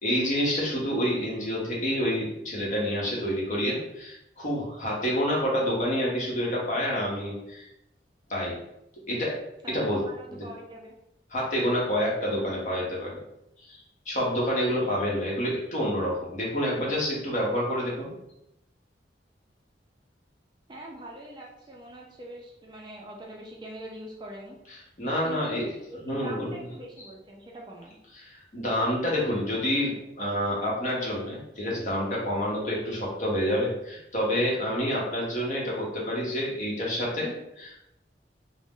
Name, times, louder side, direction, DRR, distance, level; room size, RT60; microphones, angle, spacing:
voice 1, 0.0-7.7 8.3-8.5 9.1-9.4 9.7-10.0 11.3-13.2 13.7-18.1 25.0-25.7 26.0-26.6 28.2-37.8, equal, 45° left, -4 dB, 0.8 m, -28 dB
voice 2, 9.6-11.0 20.7-24.6 25.2-25.6 25.9-28.0, right 1 dB, 25° right, -2 dB, 0.4 m, -43 dB
2.5 x 2.0 x 3.5 m, 0.83 s
head